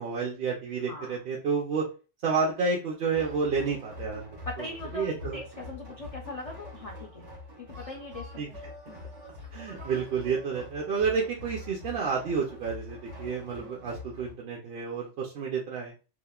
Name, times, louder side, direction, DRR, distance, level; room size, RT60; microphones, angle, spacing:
voice 1, 0.0-1.9 2.2-4.3 4.6-5.4 8.4-8.5 9.5-15.9, right 5 dB, 65° right, -2 dB, 0.7 m, -30 dB
voice 2, 0.9-1.2 4.4-7.3 7.6-8.6 8.9-9.0 13.6-13.9, left 2 dB, 55° left, -1 dB, 0.4 m, -41 dB
sound 1, 3.1-14.3, left 2 dB, 85° right, 1.4 m, -44 dB
2.9 x 2.0 x 2.2 m, 0.32 s
omnidirectional pair, 1.2 m